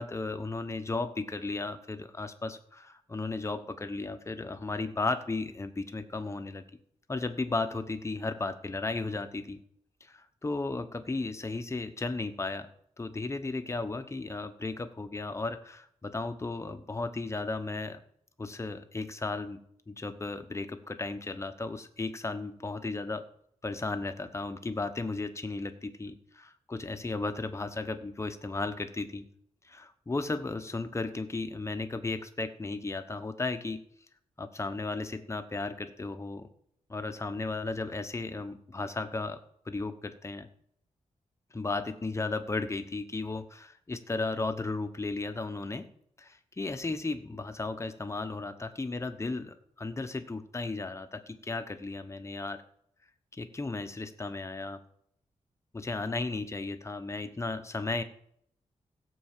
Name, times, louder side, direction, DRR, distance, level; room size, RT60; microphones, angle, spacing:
voice 1, 0.0-6.6 7.1-9.6 10.0-12.7 13.0-18.0 18.4-19.6 19.9-23.3 23.6-29.3 29.6-33.8 34.4-36.5 36.9-39.4 39.7-40.5 41.5-45.9 46.2-52.6 53.3-54.8 55.7-58.0, left 3 dB, 20° left, 8 dB, 1.0 m, -35 dB
16.5 x 5.6 x 7.5 m, 0.69 s
wide cardioid pair, 115°, 13 cm